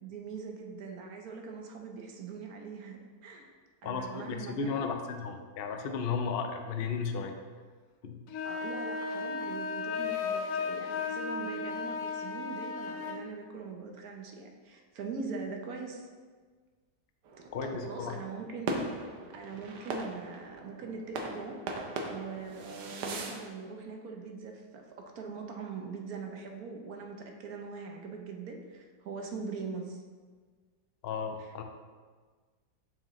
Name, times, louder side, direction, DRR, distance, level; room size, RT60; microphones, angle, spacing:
voice 1, 0.0-3.5 3.8-4.9 8.4-16.1 17.6-18.8 19.3-21.6 22.1-30.0 31.4-31.6, right 4 dB, 65° right, 2 dB, 1.2 m, -42 dB
voice 2, 3.8-7.3 8.0-8.4 17.5-18.1 31.0-31.6, left 5 dB, 90° left, 4 dB, 0.5 m, -34 dB
sound 1, 8.3-13.2, left 5 dB, 65° left, 0.8 m, -35 dB
sound 2, 17.3-23.5, right 2 dB, 80° right, 1.4 m, -39 dB
7.1 x 5.7 x 3.0 m, 1.5 s
omnidirectional pair, 1.8 m